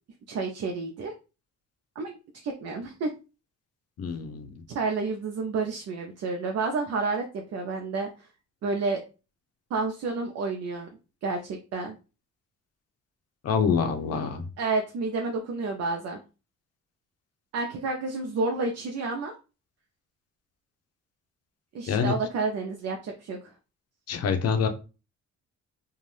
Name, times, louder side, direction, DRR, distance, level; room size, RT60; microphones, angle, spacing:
voice 1, 0.3-1.2 2.0-2.2 2.4-3.1 4.7-8.3 8.6-9.0 9.7-10.9 11.2-11.9 14.2-14.3 14.6-16.2 17.5-19.3 21.7-23.4, right 3 dB, 55° right, 2 dB, 0.6 m, -30 dB
voice 2, 4.0-4.5 13.4-14.4 21.9-22.1 24.1-24.7, left 6 dB, 55° left, 6 dB, 0.7 m, -26 dB
2.5 x 2.3 x 3.2 m, 0.31 s
cardioid pair, 90°, 30 cm